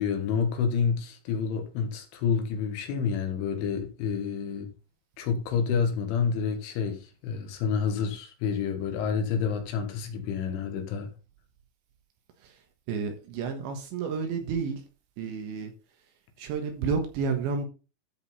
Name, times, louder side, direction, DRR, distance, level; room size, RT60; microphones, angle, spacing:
voice 1, 0.0-4.7 5.2-11.1, left 6 dB, 70° left, 3.9 m, -29 dB
voice 2, 12.9-14.8 15.2-15.7 16.4-17.7, right 5 dB, 70° right, 3.3 m, -30 dB
13.0 x 5.3 x 4.2 m
omnidirectional pair, 5.9 m